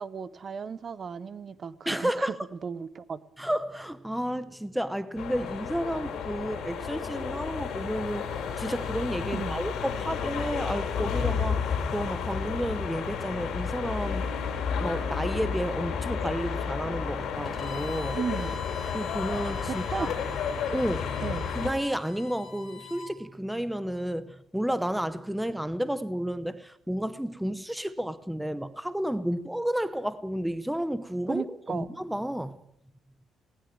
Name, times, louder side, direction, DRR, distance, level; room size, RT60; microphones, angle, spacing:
voice 1, 0.0-2.3 2.6-3.2 9.3-9.6 18.2-18.6 19.7-20.1 21.2-21.5 31.3-31.9, right 6 dB, 35° right, 1.0 m, -35 dB
voice 2, 1.9-2.3 3.4-14.3 14.8-18.2 18.9-20.1 20.7-21.1 21.5-32.6, equal, ahead, 0.8 m, -31 dB
sound 1, 5.2-21.7, left 6 dB, 70° left, 5.1 m, -32 dB
Bowed string instrument, 17.4-23.1, left 4 dB, 30° left, 4.4 m, -43 dB
20.0 x 18.5 x 9.0 m
cardioid pair, 155°, 0 cm